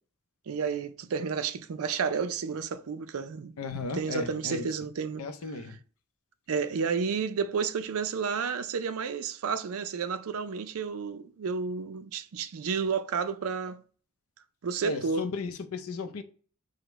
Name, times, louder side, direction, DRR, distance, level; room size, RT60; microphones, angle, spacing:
voice 1, 0.5-3.5 3.9-5.6 6.5-13.8 14.6-15.3, right 5 dB, 80° right, 0.4 m, -31 dB
voice 2, 3.6-4.7 5.2-5.8 14.8-16.2, left 3 dB, 85° left, 0.6 m, -35 dB
5.0 x 2.1 x 4.5 m
head